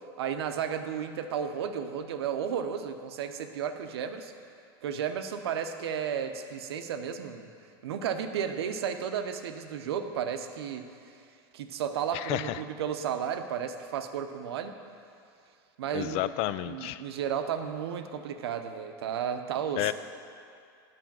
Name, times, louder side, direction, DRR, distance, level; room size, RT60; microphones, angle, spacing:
voice 1, 0.2-4.3 4.8-7.5 7.8-10.9 11.5-14.7 15.8-16.3 16.6-19.9, right 8 dB, 85° right, 7 dB, 0.7 m, -33 dB
voice 2, 12.1-12.6 15.9-17.0 19.8-19.9, left 15 dB, 50° left, 14 dB, 0.4 m, -31 dB
9.4 x 5.0 x 7.3 m, 2.4 s
supercardioid pair, 120°, 13 cm